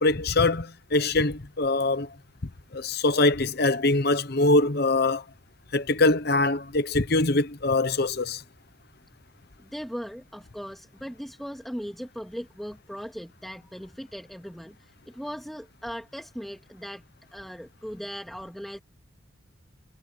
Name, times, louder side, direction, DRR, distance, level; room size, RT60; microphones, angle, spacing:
voice 1, 0.0-2.1 2.7-5.2 5.7-8.4, left 2 dB, 50° left, 0.9 m, -23 dB
voice 2, 9.6-17.0 17.3-18.8, equal, ahead, 2.5 m, -38 dB
head